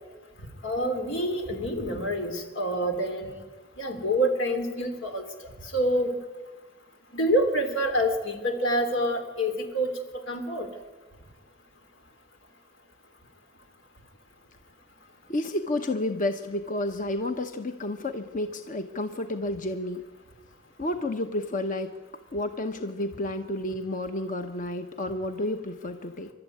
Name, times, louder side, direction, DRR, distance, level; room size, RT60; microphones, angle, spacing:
voice 1, 0.6-3.4 3.8-5.2 5.7-6.2 7.1-9.9 10.3-10.7, equal, 85° left, 5 dB, 3.4 m, -27 dB
voice 2, 15.3-20.0 20.8-21.9 22.3-26.3, left 1 dB, 45° left, 7 dB, 0.9 m, -31 dB
28.0 x 12.5 x 9.5 m, 1.2 s
head